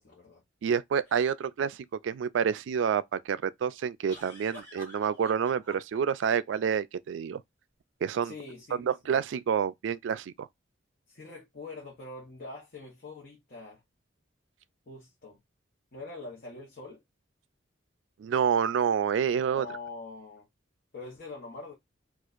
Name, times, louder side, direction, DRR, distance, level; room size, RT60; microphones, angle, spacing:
voice 1, 0.0-0.4 8.2-8.9 11.1-13.8 14.9-15.4 15.9-17.0 19.5-20.5 20.9-21.7, left 3 dB, 50° left, 0.9 m, -44 dB
voice 2, 0.6-7.4 8.0-8.3 8.8-10.5 18.2-19.7, right 7 dB, 70° right, 0.3 m, -28 dB
sound 1, 1.1-1.2 4.1-6.0, right 1 dB, 15° left, 1.9 m, -48 dB
4.3 x 2.4 x 2.4 m
head